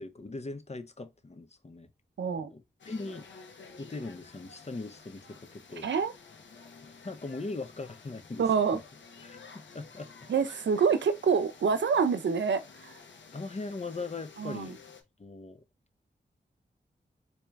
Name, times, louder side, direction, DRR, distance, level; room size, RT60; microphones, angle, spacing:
voice 1, 0.0-1.9 2.4-3.3 3.8-5.9 7.0-8.4 9.2-10.1 13.3-14.8 15.2-15.6, left 3 dB, 35° left, 0.8 m, -40 dB
voice 2, 2.2-2.5 5.8-6.1 8.4-8.8 10.3-13.0 14.4-14.7, right 6 dB, 75° right, 0.6 m, -27 dB
sound 1, 2.8-15.0, left 5 dB, 80° left, 0.9 m, -52 dB
4.4 x 3.0 x 2.3 m
cardioid pair, 45°, 19 cm